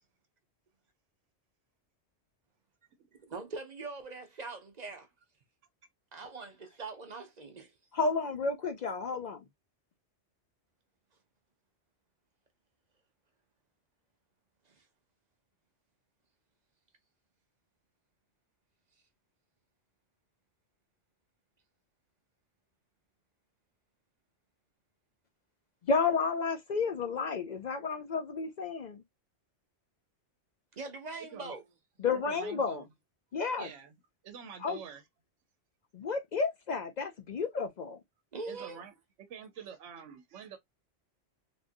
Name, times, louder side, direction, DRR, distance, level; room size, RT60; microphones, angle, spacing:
voice 1, 3.3-5.1 6.1-7.7 14.7-14.9 30.7-31.6 38.3-38.8, right 3 dB, 45° right, 0.7 m, -42 dB
voice 2, 7.9-9.4 25.8-29.0 32.0-32.8 33.3-33.7 34.6-34.8 35.9-38.0, left 4 dB, 60° left, 0.5 m, -31 dB
voice 3, 32.2-32.9 33.6-34.0 34.2-35.0 38.4-38.9 39.3-40.6, right 7 dB, 80° right, 0.9 m, -47 dB
3.5 x 2.5 x 2.5 m
omnidirectional pair, 1.2 m